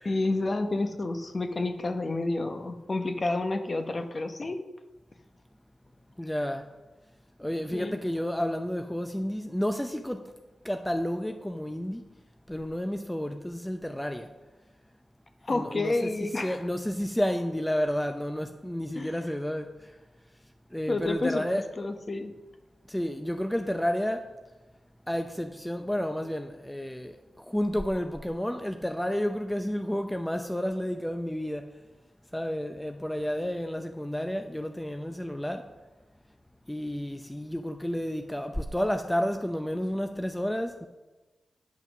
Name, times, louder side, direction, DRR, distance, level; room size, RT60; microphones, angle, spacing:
voice 1, 0.0-4.6 7.7-8.0 15.4-16.6 19.0-19.1 20.9-21.5 21.8-22.3, left 2 dB, 35° left, 0.9 m, -29 dB
voice 2, 6.2-6.6 7.4-10.2 10.6-12.0 12.5-14.3 15.5-19.7 20.7-21.6 22.9-24.2 25.1-31.6 32.3-35.6 36.7-40.9, equal, 5° left, 0.5 m, -31 dB
9.1 x 5.8 x 6.0 m
cardioid pair, 80°, 0 cm